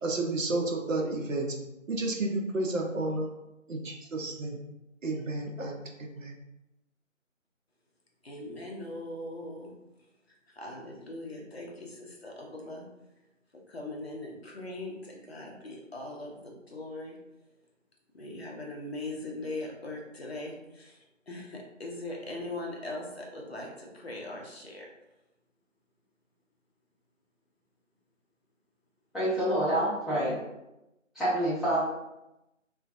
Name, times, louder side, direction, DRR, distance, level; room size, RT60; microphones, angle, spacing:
voice 1, 0.0-1.6 1.9-3.3 3.7-4.6 5.0-5.7 6.0-6.3, right 2 dB, 80° right, 2 dB, 0.6 m, -31 dB
voice 2, 8.2-9.7 10.3-12.8 13.7-17.2 18.1-24.9, left 2 dB, 55° left, -1 dB, 0.5 m, -40 dB
voice 3, 29.1-30.3 31.1-31.8, right 1 dB, ahead, -12 dB, 0.5 m, -27 dB
2.4 x 2.2 x 2.5 m, 0.94 s
figure-of-eight pair, 180°, 39 cm